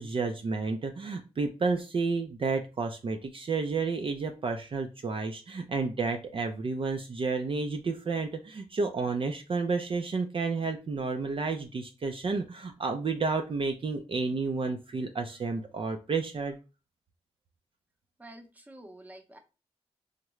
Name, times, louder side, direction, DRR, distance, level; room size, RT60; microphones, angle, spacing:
voice 1, 0.0-16.6, right 4 dB, 50° right, 5 dB, 0.4 m, -31 dB
voice 2, 18.2-19.4, right 1 dB, 15° right, 4 dB, 0.7 m, -49 dB
3.6 x 2.1 x 3.0 m, 0.31 s
cardioid pair, 60°, 11 cm